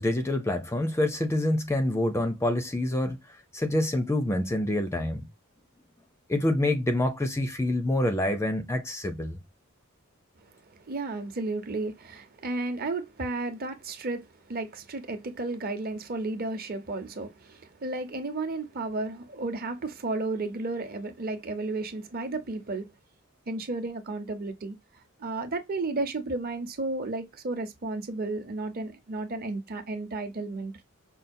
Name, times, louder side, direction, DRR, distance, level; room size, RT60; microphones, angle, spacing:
voice 1, 0.0-3.2 3.5-5.3 6.3-9.4, left 1 dB, 10° left, 0.5 m, -26 dB
voice 2, 10.9-22.9 23.5-24.7 25.2-30.8, right 2 dB, 45° right, 0.8 m, -33 dB
5.5 x 2.3 x 2.6 m
head